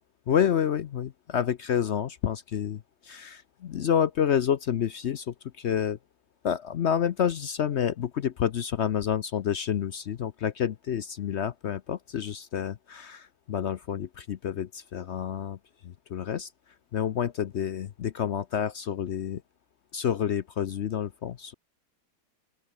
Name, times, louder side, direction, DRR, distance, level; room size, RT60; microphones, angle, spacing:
voice 1, 0.3-6.0 6.4-15.6 15.8-16.5 16.9-19.4 19.9-21.5, left 9 dB, 60° left, 0.7 m, -29 dB
open air
omnidirectional pair, 1.8 m